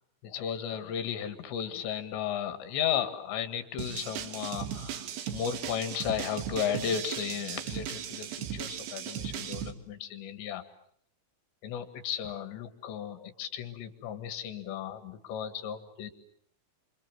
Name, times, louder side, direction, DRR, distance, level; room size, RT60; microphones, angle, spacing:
voice 1, 0.2-10.6 11.6-16.1, left 9 dB, 75° left, 9 dB, 4.0 m, -34 dB
sound 1, 3.8-9.7, right 9 dB, 70° right, 3.6 m, -37 dB
27.5 x 27.0 x 7.7 m, 0.67 s
omnidirectional pair, 5.2 m